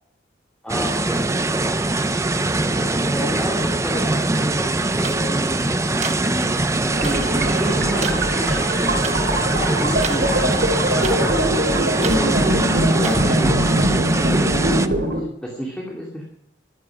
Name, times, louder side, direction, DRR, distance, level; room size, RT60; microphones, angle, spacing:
voice 1, 0.6-1.8 2.5-8.9 9.5-11.6 12.0-14.8 15.1-16.2, equal, 5° left, -2 dB, 2.6 m, -30 dB
sound 1, 0.7-14.9, right 2 dB, 15° right, 0.6 m, -22 dB
sound 2, 5.0-5.1 6.0-6.1 7.0-7.1 8.0-8.1 9.0-9.1 10.0-10.2 11.0-11.2 12.0-12.2 13.0-13.2, right 5 dB, 40° right, 1.4 m, -28 dB
sound 3, 6.9-15.2, equal, 60° right, 3.2 m, -22 dB
14.0 x 12.5 x 6.2 m, 0.78 s
head